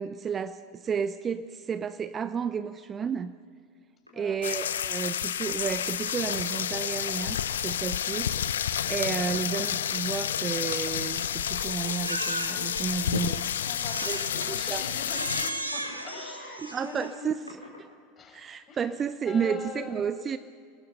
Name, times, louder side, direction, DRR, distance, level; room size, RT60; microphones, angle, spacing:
voice 1, 0.0-3.3 4.2-8.3 8.8-13.4 14.0-14.8 16.6-17.3 18.3-20.4, right 6 dB, 25° right, 13 dB, 0.7 m, -32 dB
sound 1, 4.1-4.5 5.7-5.9 6.3-6.4 7.1-8.5 9.0-9.7 10.4-11.7 12.0-12.1 12.9-13.7 14.0-14.6 14.8-14.9 15.6-16.1 16.9-17.0 17.2-17.9, left 1 dB, 90° left, 4.1 m, -50 dB
sound 2, 4.4-15.5, left 9 dB, 65° left, 0.8 m, -30 dB
Crying sobbing, 12.0-12.8 13.7-14.5 15.1-17.2, right 1 dB, 85° right, 1.4 m, -35 dB
voice 2, 13.7-17.5 18.2-18.9 19.2-20.0, left 4 dB, 30° left, 2 dB, 5.6 m, -42 dB
29.0 x 19.0 x 5.5 m, 2.1 s
figure-of-eight pair, 80°, 0 cm